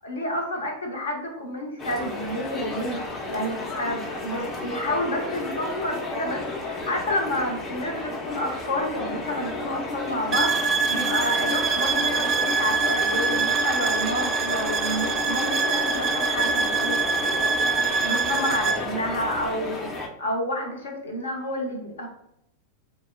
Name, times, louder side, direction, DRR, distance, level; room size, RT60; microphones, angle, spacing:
voice 1, 0.0-17.6 18.0-22.1, left 1 dB, 65° left, 1 dB, 0.8 m, -30 dB
sound 1, 1.8-20.1, left 2 dB, 20° left, 0.5 m, -32 dB
sound 2, 10.3-18.8, right 5 dB, 30° right, 0.3 m, -25 dB
4.1 x 2.0 x 2.3 m, 0.77 s
figure-of-eight pair, 90°, 0 cm